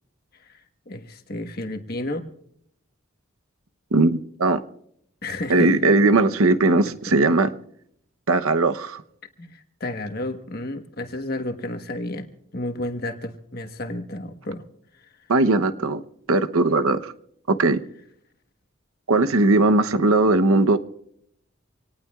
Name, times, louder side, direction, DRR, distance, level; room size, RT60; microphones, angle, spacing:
voice 1, 0.9-2.3 5.2-5.7 9.4-12.3 12.5-14.6, left 1 dB, 45° left, 1.3 m, -31 dB
voice 2, 3.9-4.6 5.5-7.5 8.3-9.0 15.3-16.0 16.3-17.1 17.5-17.8 19.1-20.8, right 2 dB, 85° right, 0.9 m, -19 dB
26.5 x 18.5 x 2.4 m
head